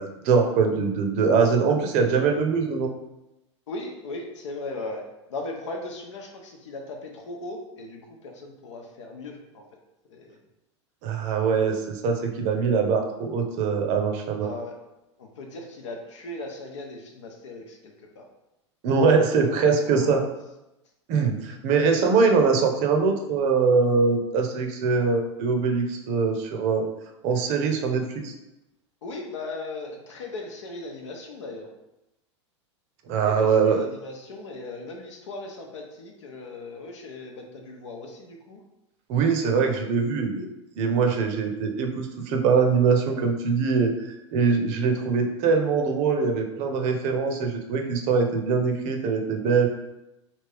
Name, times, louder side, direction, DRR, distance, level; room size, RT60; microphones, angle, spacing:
voice 1, 0.0-2.9 11.0-14.5 18.8-20.2 21.1-26.9 27.2-28.3 33.1-33.9 39.1-40.5 40.7-43.9 44.3-49.7, right 5 dB, 50° right, 4 dB, 0.6 m, -22 dB
voice 2, 3.7-9.6 10.1-10.4 14.4-14.8 15.2-18.2 19.5-20.1 29.0-31.7 33.2-38.6, left 2 dB, 75° left, 2 dB, 0.7 m, -38 dB
3.4 x 2.7 x 3.3 m, 0.93 s
hypercardioid pair, 95°, 15 cm